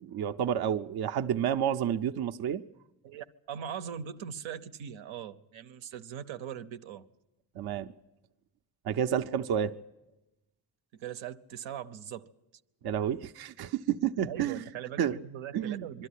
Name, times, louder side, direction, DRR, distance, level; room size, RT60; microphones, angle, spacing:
voice 1, 0.0-2.6 7.6-7.9 8.8-9.7 12.8-14.6 15.0-15.2 15.5-16.1, right 9 dB, 55° right, 0.6 m, -30 dB
voice 2, 3.0-7.1 10.9-12.3 14.2-16.1, right 9 dB, 85° right, 0.9 m, -40 dB
22.5 x 13.0 x 9.9 m
cardioid pair, 115°, 45 cm